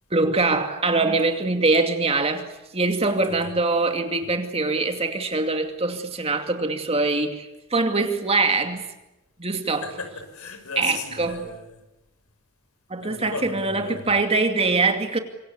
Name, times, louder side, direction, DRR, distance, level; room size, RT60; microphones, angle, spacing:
voice 1, 0.1-2.5 2.7-8.9 9.4-9.9 10.8-11.4 12.9-15.2, right 3 dB, 25° right, 2.5 m, -23 dB
voice 2, 3.1-3.6 9.8-11.8 13.0-14.2, left 4 dB, 80° left, 5.8 m, -36 dB
26.5 x 24.5 x 8.3 m
head